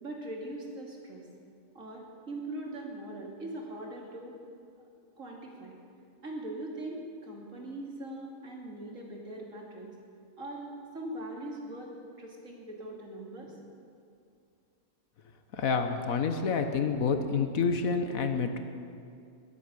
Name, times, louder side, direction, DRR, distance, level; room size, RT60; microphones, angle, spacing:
voice 1, 0.0-1.2 1.7-4.3 5.2-5.7 6.2-9.9 10.4-11.9 12.2-13.5, right 1 dB, 70° right, -1 dB, 2.9 m, -41 dB
voice 2, 15.5-18.6, left 5 dB, 85° left, 7 dB, 1.6 m, -28 dB
22.0 x 8.4 x 6.9 m, 2.4 s
omnidirectional pair, 1.4 m